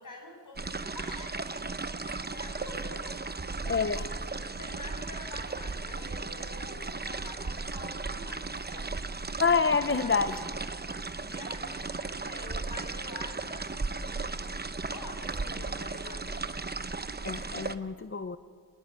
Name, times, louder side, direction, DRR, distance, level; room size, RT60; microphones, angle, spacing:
voice 1, 0.0-1.6 2.0-8.9 10.0-10.5 11.2-14.4 14.9-16.6, left 2 dB, 45° left, 2 dB, 7.4 m, -47 dB
sound 1, 0.6-17.8, right 3 dB, 25° right, 0.9 m, -36 dB
voice 2, 3.6-4.0 9.4-10.4 17.2-18.4, left 5 dB, 30° left, 11 dB, 0.7 m, -27 dB
27.5 x 20.5 x 9.2 m, 2.1 s
wide cardioid pair, 110°, 42 cm